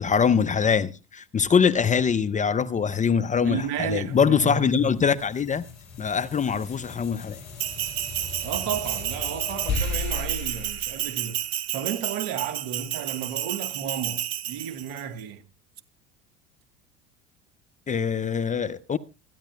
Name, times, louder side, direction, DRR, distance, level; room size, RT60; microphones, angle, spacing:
voice 1, 0.0-5.6 6.0-7.4 17.9-19.0, left 6 dB, 20° left, 0.6 m, -23 dB
sound 1, 3.3-11.9, left 4 dB, 50° left, 6.2 m, -36 dB
voice 2, 3.4-5.0 8.4-11.4 11.7-15.4, right 8 dB, 65° right, 1.4 m, -33 dB
Bell, 7.6-15.0, right 12 dB, 45° right, 0.9 m, -31 dB
25.5 x 10.0 x 2.2 m
hypercardioid pair, 75°, 36 cm